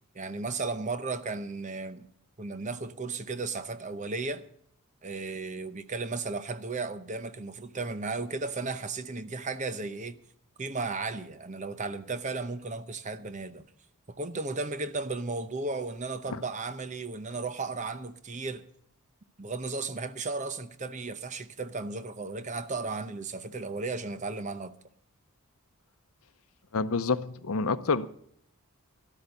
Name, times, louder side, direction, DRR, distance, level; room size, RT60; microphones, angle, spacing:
voice 1, 0.1-2.1 2.4-4.5 5.0-10.2 10.6-13.6 14.1-18.6 19.4-24.7, right 3 dB, 35° right, 0.8 m, -35 dB
voice 2, 26.7-28.1, left 4 dB, 75° left, 0.7 m, -28 dB
12.5 x 12.5 x 5.2 m
head